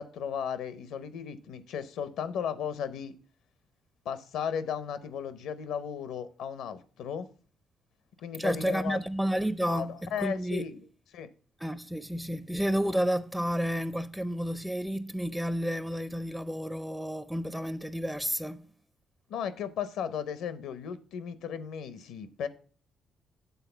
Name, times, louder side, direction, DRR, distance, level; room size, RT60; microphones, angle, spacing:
voice 1, 0.0-3.1 4.0-7.3 8.2-9.0 9.7-10.9 11.1-11.3 19.3-22.5, left 7 dB, 85° left, 0.8 m, -35 dB
voice 2, 8.4-10.7 11.6-18.7, equal, 5° right, 0.4 m, -31 dB
8.2 x 3.8 x 6.7 m
cardioid pair, 90°, 0 cm